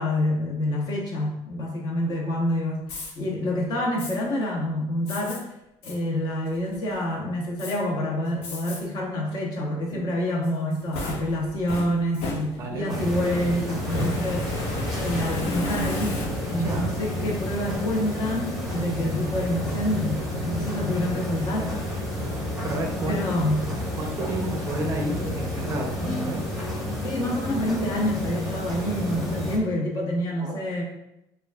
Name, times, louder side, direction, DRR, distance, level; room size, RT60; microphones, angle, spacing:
voice 1, 0.0-5.5 5.8-14.5 15.0-16.2 16.5-21.8 23.0-23.6 27.0-30.8, left 1 dB, 40° left, -1 dB, 0.9 m, -27 dB
Fire, 2.8-3.1 4.0-4.1 5.1-5.4 5.8-6.0 6.5-6.9 7.6-7.7 8.4-8.8 9.3-9.4 10.4-12.9 13.8-16.7, left 2 dB, 75° left, 0.9 m, -33 dB
voice 2, 12.5-13.1 16.5-16.8 19.4-19.5 21.6-21.8 22.6-23.2 23.9-26.5 30.4-30.6, right 2 dB, 30° right, 1 dB, 0.5 m, -31 dB
sound 1, 12.9-29.6, left 1 dB, ahead, 1.0 m, -30 dB
6.8 x 2.4 x 2.3 m, 0.85 s
cardioid pair, 170°, 10 cm